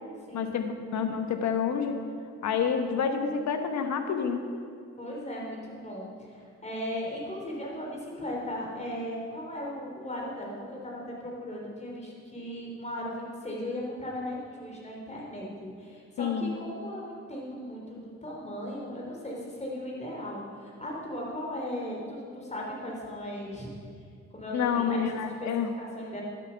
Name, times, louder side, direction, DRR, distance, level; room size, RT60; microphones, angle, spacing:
voice 1, 0.3-1.9 2.4-4.4 16.2-16.5 24.5-25.7, left 6 dB, 65° left, 7 dB, 1.2 m, -28 dB
voice 2, 5.0-23.7 24.3-25.5 25.8-26.2, left 1 dB, 20° left, -2 dB, 3.6 m, -37 dB
12.0 x 8.1 x 5.8 m, 2.2 s
cardioid pair, 90°, 30 cm